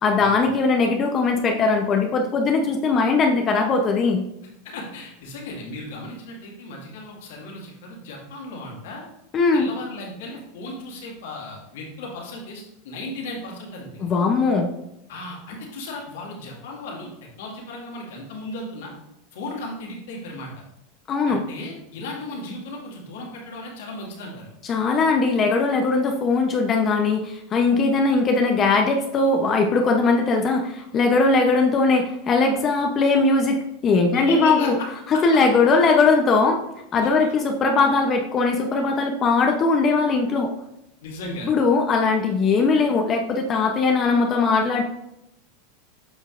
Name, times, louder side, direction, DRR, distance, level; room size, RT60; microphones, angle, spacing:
voice 1, 0.0-4.2 9.3-9.7 14.0-14.7 21.1-21.4 24.7-34.8 35.2-36.6 36.9-40.5 41.4-44.8, left 4 dB, 35° left, 3 dB, 0.7 m, -20 dB
voice 2, 4.6-9.1 9.5-14.1 15.1-17.1 17.4-18.9 19.3-20.6 21.2-24.5 34.1-34.9 35.1-35.2 37.0-37.3 41.0-41.5, left 2 dB, 75° left, -2 dB, 2.1 m, -35 dB
8.4 x 5.4 x 2.5 m, 0.84 s
hypercardioid pair, 110°, 0 cm